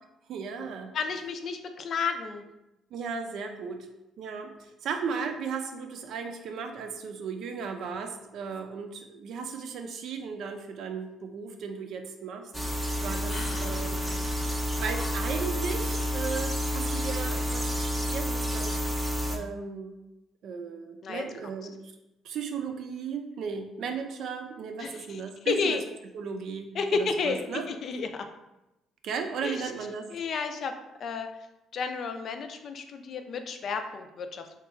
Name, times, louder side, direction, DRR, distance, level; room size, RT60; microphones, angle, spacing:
voice 1, 0.3-0.9 2.9-3.9 4.2-14.1 14.8-18.8 19.3-20.0 20.4-21.8 22.2-25.8 26.1-27.6 29.0-30.1, right 6 dB, 70° right, 5 dB, 0.4 m, -36 dB
voice 2, 0.9-2.4 13.3-13.8 14.8-15.2 21.0-21.2 24.8-25.2 25.5-25.8 26.7-28.3 29.4-29.6 30.1-30.7 31.0-31.3 31.7-34.4, left 5 dB, 55° left, 6 dB, 0.4 m, -32 dB
sound 1, 12.5-19.4, equal, 5° right, 0.5 m, -30 dB
2.9 x 2.3 x 3.6 m, 0.93 s
supercardioid pair, 75°, 0 cm